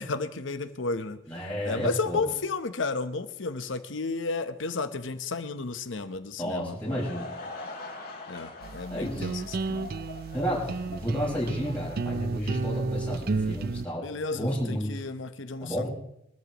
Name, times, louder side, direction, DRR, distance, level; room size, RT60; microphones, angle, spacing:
voice 1, 0.0-1.2 1.6-7.3 8.3-9.9 14.0-15.9, left 3 dB, 70° left, 10 dB, 0.9 m, -33 dB
voice 2, 1.3-2.3 6.4-7.3 8.9-9.3 10.3-15.0 15.6-15.9, equal, 5° left, -7 dB, 5.2 m, -31 dB
Laughter / Crowd, 6.7-12.9, left 2 dB, 50° left, 3.2 m, -44 dB
sound 1, 8.6-13.9, right 4 dB, 50° right, 0.4 m, -32 dB
24.0 x 13.5 x 3.0 m, 0.80 s
head